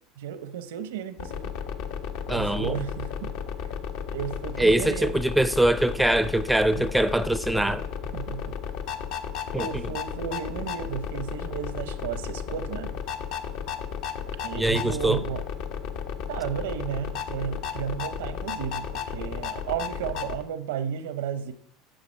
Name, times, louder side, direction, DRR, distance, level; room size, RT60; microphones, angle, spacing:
voice 1, 0.2-1.6 2.3-3.3 3.6-3.7 4.1-5.1 6.8-6.9 8.1-8.6 9.5-13.0 14.4-15.4 16.3-21.5, right 8 dB, 90° right, 0.8 m, -33 dB
sound 1, 1.2-20.4, left 7 dB, 65° left, 0.8 m, -34 dB
voice 2, 2.3-2.8 4.6-7.9 9.5-9.7 14.6-15.2, right 1 dB, 5° right, 0.4 m, -23 dB
9.0 x 6.3 x 4.5 m
supercardioid pair, 110°, 0 cm